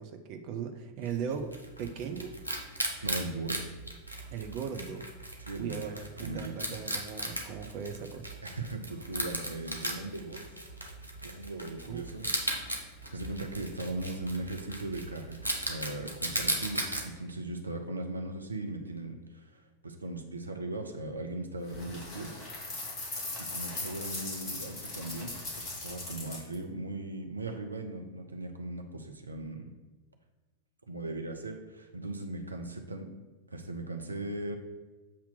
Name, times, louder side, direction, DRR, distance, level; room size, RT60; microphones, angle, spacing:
voice 1, 0.0-2.3 4.3-5.0 5.6-8.3 11.9-12.0, right 6 dB, 45° right, 5 dB, 0.6 m, -38 dB
Wild animals, 1.1-17.0, right 1 dB, 85° left, 1.0 m, -37 dB
voice 2, 3.0-3.7 5.4-5.9 6.2-6.5 8.4-10.5 11.2-12.3 13.1-22.4 23.0-23.1 23.4-29.8 30.9-33.1 33.5-34.6, right 2 dB, 80° right, 4 dB, 0.7 m, -38 dB
sound 1, 21.7-26.5, left 2 dB, 35° left, 2.1 m, -39 dB
7.4 x 2.9 x 5.9 m, 1.2 s
figure-of-eight pair, 90°, 0 cm